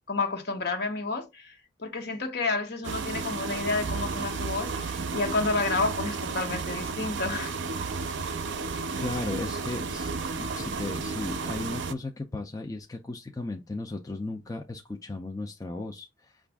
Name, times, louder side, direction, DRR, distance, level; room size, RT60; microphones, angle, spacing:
voice 1, 0.1-7.5, left 3 dB, 55° left, 1.0 m, -30 dB
sound 1, 2.8-11.9, right 4 dB, 65° right, 0.5 m, -32 dB
voice 2, 8.5-16.4, left 2 dB, 20° left, 0.4 m, -36 dB
6.0 x 2.4 x 3.5 m
head